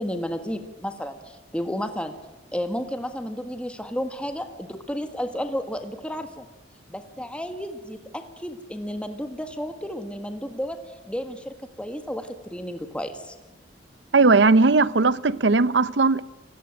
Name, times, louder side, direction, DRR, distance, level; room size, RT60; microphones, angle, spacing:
voice 1, 0.0-2.1 2.5-6.5 6.9-13.4, equal, 5° left, 1.6 m, -32 dB
voice 2, 14.1-16.2, right 3 dB, 80° right, 0.8 m, -18 dB
28.5 x 17.5 x 9.0 m
head